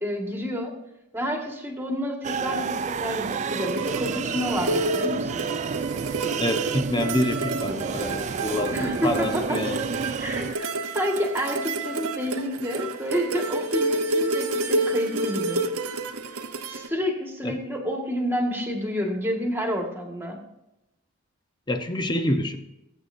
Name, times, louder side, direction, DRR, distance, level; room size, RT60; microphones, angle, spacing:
voice 1, 0.0-0.7 1.1-5.5 8.7-9.6 10.2-15.6 16.7-20.4, equal, 10° right, 1 dB, 1.7 m, -29 dB
sound 1, 2.2-10.5, right 5 dB, 30° right, 0.3 m, -30 dB
sound 2, 3.2-16.9, right 2 dB, 85° right, 1.0 m, -29 dB
voice 2, 6.4-8.8 9.0-9.8 17.4-17.6 21.7-22.6, left 1 dB, 20° left, 6 dB, 0.8 m, -27 dB
19.5 x 8.2 x 2.7 m, 0.89 s
head